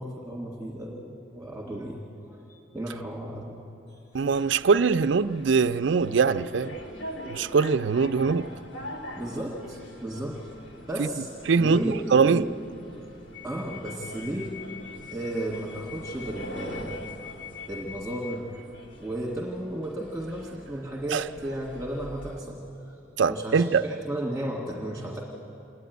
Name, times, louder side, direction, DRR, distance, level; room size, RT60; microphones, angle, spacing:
voice 1, 0.0-3.6 3.9-4.0 9.2-10.4 10.9-11.3 11.6-12.5 13.4-14.6 15.1-17.0 17.7-18.5 19.0-22.9 23.3-25.2, right 1 dB, 5° right, -4 dB, 1.9 m, -34 dB
sound 1, 4.1-22.4, left 1 dB, 90° left, 2.4 m, -43 dB
voice 2, 4.1-6.8 7.3-8.5 11.0-11.1 11.5-12.5 21.1-21.2 23.2-23.8, right 5 dB, 80° right, 12 dB, 0.4 m, -22 dB
27.0 x 11.0 x 9.4 m, 2.9 s
head